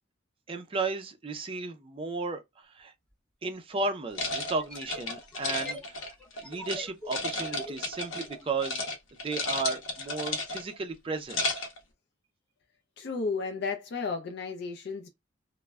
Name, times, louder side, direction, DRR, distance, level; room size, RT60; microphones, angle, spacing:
voice 1, 0.5-2.9 3.4-11.6, right 3 dB, 30° right, 0.4 m, -34 dB
sound 1, 3.1-3.2 4.5-8.5, left 1 dB, 5° left, 0.7 m, -45 dB
sound 2, 4.1-6.8 7.1-8.3 8.6-8.9 9.2-10.8 11.1-11.8, left 2 dB, 85° left, 0.8 m, -33 dB
voice 2, 13.0-15.1, left 4 dB, 55° left, 0.4 m, -33 dB
2.1 x 2.0 x 3.3 m
head